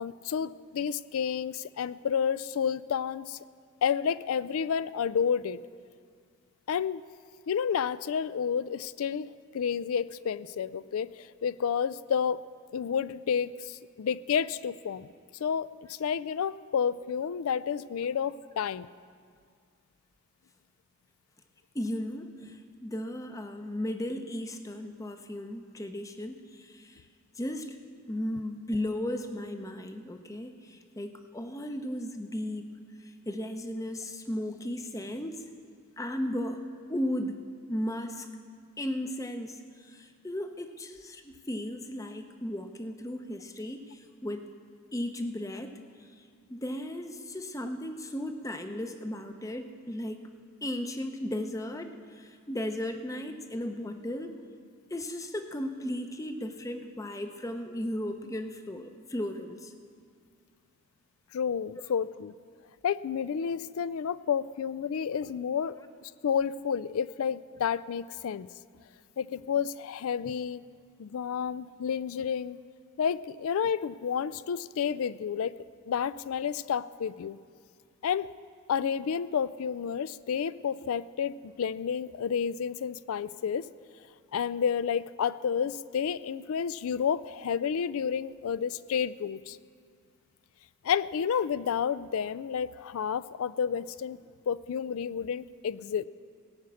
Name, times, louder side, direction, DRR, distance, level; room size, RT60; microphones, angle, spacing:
voice 1, 0.0-3.4 3.8-5.6 6.7-7.0 7.5-12.4 12.7-15.1 15.4-18.9 61.3-62.3 62.8-65.8 66.0-68.5 69.2-70.7 71.0-72.6 73.0-75.6 75.9-77.4 78.0-78.3 78.7-83.7 84.3-89.6 90.8-94.2 94.5-96.1, left 7 dB, 70° left, 18 dB, 0.3 m, -30 dB
voice 2, 21.7-27.0 27.3-27.8 28.1-32.7 33.0-35.4 36.0-36.6 36.9-37.4 37.7-38.3 38.8-44.5 44.9-45.8 46.2-46.3 46.5-50.3 50.6-54.4 54.9-59.7 61.7-61.8, left 1 dB, 15° left, 7 dB, 0.6 m, -35 dB
17.5 x 6.4 x 8.3 m, 2.1 s
head